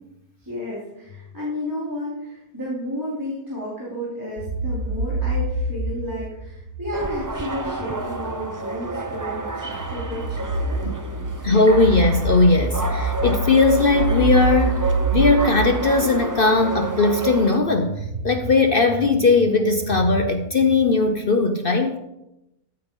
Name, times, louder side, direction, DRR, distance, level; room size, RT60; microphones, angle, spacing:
voice 1, 0.4-11.3, equal, 10° right, -8 dB, 3.2 m, -32 dB
sound 1, 4.4-7.4 7.9-21.0, right 3 dB, 75° right, 2.4 m, -27 dB
sound 2, 6.9-17.6, right 2 dB, 30° right, 0.3 m, -30 dB
voice 2, 11.4-22.0, left 3 dB, 45° left, 6 dB, 0.8 m, -19 dB
14.5 x 8.7 x 3.8 m, 0.90 s
omnidirectional pair, 1.6 m